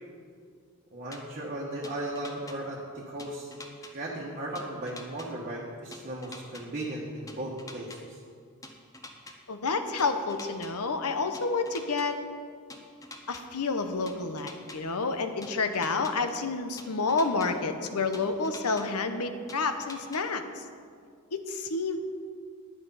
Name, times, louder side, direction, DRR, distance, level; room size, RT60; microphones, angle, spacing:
voice 1, 0.9-3.5 3.9-8.2, right 1 dB, 35° right, -4 dB, 1.3 m, -36 dB
Desk Hitting, 1.1-1.2 1.8-2.6 3.2-3.9 4.6-5.3 5.9-6.6 7.3-8.0 8.6-9.4 10.0-10.7 11.3-12.1 12.7-13.4 14.1-14.8 15.4-16.1 16.8-17.5 18.1-18.9 19.5-20.2, left 2 dB, 15° left, 0.8 m, -45 dB
voice 2, 9.5-12.2 13.3-20.4 21.3-22.0, left 4 dB, 90° left, 8 dB, 0.9 m, -29 dB
10.5 x 9.4 x 5.6 m, 2.2 s
head